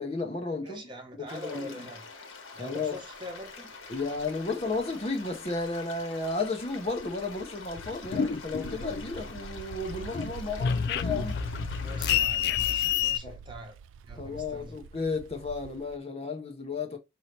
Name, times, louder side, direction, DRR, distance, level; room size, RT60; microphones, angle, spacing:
voice 1, 0.0-0.8 1.1-1.7 2.6-3.0 3.9-11.4 13.2-13.4 14.2-17.0, left 3 dB, 30° left, 0.7 m, -33 dB
voice 2, 0.6-2.1 2.5-3.8 11.8-13.8 14.1-14.8, equal, 25° right, 1.0 m, -44 dB
sound 1, 1.3-12.3, left 4 dB, 90° left, 1.2 m, -46 dB
sound 2, 3.1-3.5 3.8-16.0, right 7 dB, 80° right, 0.3 m, -46 dB
sound 3, 7.8-9.5 9.8-13.2, left 8 dB, 55° left, 0.3 m, -29 dB
5.4 x 2.8 x 3.1 m
head